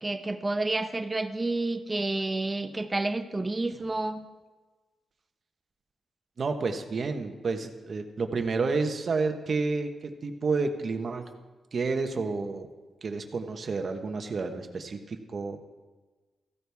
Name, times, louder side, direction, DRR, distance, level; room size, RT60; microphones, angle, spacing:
voice 1, 0.0-4.2, right 2 dB, 20° right, 8 dB, 0.9 m, -30 dB
voice 2, 6.4-11.3 11.7-12.7 13.0-15.6, right 4 dB, 45° right, 6 dB, 1.2 m, -30 dB
15.0 x 14.0 x 3.5 m, 1.3 s
cardioid pair, 110°, 0 cm